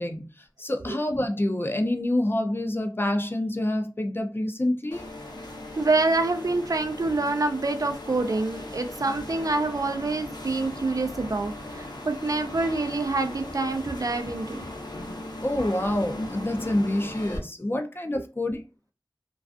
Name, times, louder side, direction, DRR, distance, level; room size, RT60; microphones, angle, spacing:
voice 1, 0.0-5.1 15.4-18.6, left 1 dB, 30° left, 0.4 m, -27 dB
sound 1, 4.9-17.4, left 1 dB, 65° left, 0.7 m, -38 dB
voice 2, 5.8-14.6, right 3 dB, 50° right, 0.3 m, -26 dB
2.4 x 2.3 x 2.3 m
wide cardioid pair, 45°, 8 cm